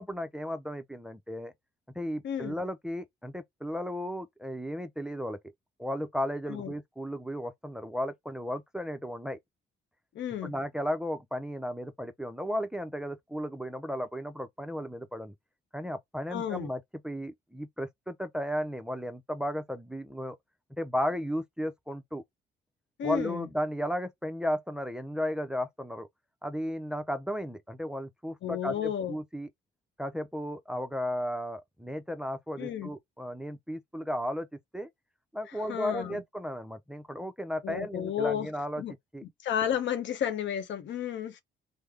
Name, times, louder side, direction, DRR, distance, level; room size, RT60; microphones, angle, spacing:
voice 1, 0.0-1.5 2.0-5.4 5.8-9.4 10.4-15.3 15.7-20.4 20.7-22.2 23.0-26.1 26.4-29.5 30.0-34.5 34.7-34.9 35.3-38.8 39.1-39.2, equal, 5° right, 0.5 m, -34 dB
voice 2, 2.2-2.6 6.5-6.7 10.1-10.5 16.3-16.7 23.0-23.5 28.4-29.1 32.6-32.9 35.5-36.2 37.6-38.5 38.8-38.9 39.4-41.4, left 9 dB, 70° left, 0.7 m, -32 dB
3.4 x 2.0 x 3.3 m
cardioid pair, 90°, 20 cm